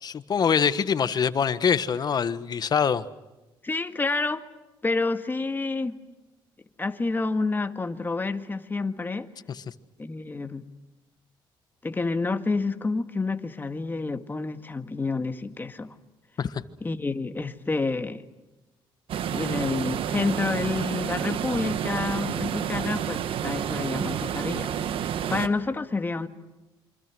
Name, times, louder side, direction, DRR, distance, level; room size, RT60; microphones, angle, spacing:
voice 1, 0.0-3.0 16.4-16.5, left 7 dB, 45° left, 1.3 m, -24 dB
voice 2, 3.6-4.4 4.8-6.0 6.8-9.3 10.0-10.7 11.8-15.9 16.8-18.2 19.3-24.7 25.3-26.3, left 3 dB, 20° left, 1.8 m, -29 dB
sound 1, 19.1-25.5, right 9 dB, 70° right, 1.4 m, -29 dB
28.0 x 25.5 x 6.2 m
cardioid pair, 100°, 10 cm